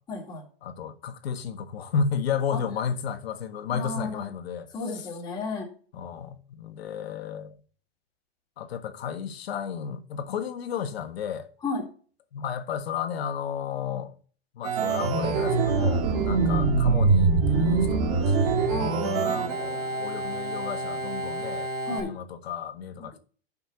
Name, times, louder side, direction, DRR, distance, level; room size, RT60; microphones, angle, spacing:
voice 1, 0.1-0.4 2.5-2.6 3.7-4.2 4.7-5.7 11.6-11.8 16.1-16.3 18.7-19.5 21.9-22.1, left 3 dB, 15° left, 2.2 m, -33 dB
voice 2, 0.6-4.7 5.9-7.6 8.6-11.5 12.3-14.1 14.5-18.6 19.0-23.2, left 7 dB, 80° left, 1.5 m, -33 dB
Organ, 14.6-22.0, right 4 dB, 35° right, 2.1 m, -24 dB
7.2 x 5.7 x 6.7 m
supercardioid pair, 175°, 30 cm